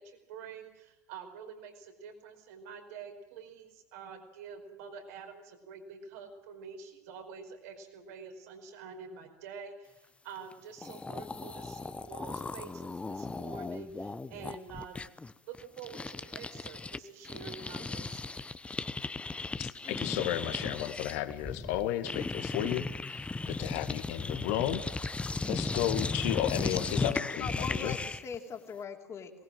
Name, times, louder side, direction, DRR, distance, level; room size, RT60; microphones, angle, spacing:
voice 1, 0.0-15.0 15.5-18.4, right 6 dB, 65° right, 5 dB, 4.9 m, -47 dB
sound 1, 10.5-10.6 10.8-17.0 17.2-28.3, left 3 dB, 15° left, 1.0 m, -36 dB
voice 2, 19.6-24.8 25.5-28.0, left 13 dB, 60° left, 9 dB, 1.9 m, -33 dB
voice 3, 26.7-28.0 28.2-29.3, left 7 dB, 30° left, 4 dB, 3.2 m, -39 dB
22.5 x 19.5 x 7.7 m, 0.93 s
figure-of-eight pair, 80°, 9 cm